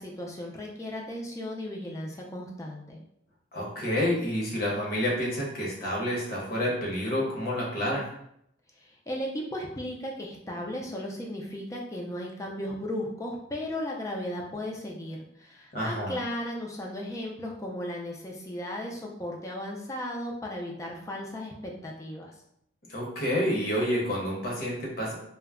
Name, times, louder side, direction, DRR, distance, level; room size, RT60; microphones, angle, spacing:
voice 1, 0.0-3.0 8.8-22.3, left 1 dB, 15° left, -1 dB, 0.3 m, -36 dB
voice 2, 3.5-8.0 15.7-16.2 22.9-25.1, equal, 50° left, -3 dB, 0.8 m, -29 dB
2.2 x 2.0 x 3.5 m, 0.74 s
head